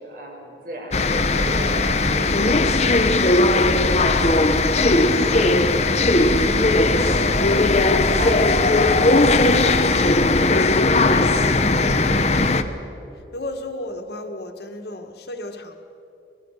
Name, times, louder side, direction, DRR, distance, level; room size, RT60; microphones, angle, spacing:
voice 1, 0.0-4.3 4.8-9.6, right 1 dB, 50° right, 0 dB, 5.7 m, -35 dB
sound 1, 0.9-12.6, left 2 dB, 35° left, 1.0 m, -18 dB
voice 2, 10.7-12.7 13.3-15.7, left 1 dB, 60° left, 5 dB, 1.9 m, -34 dB
27.0 x 20.0 x 6.8 m, 2.8 s
head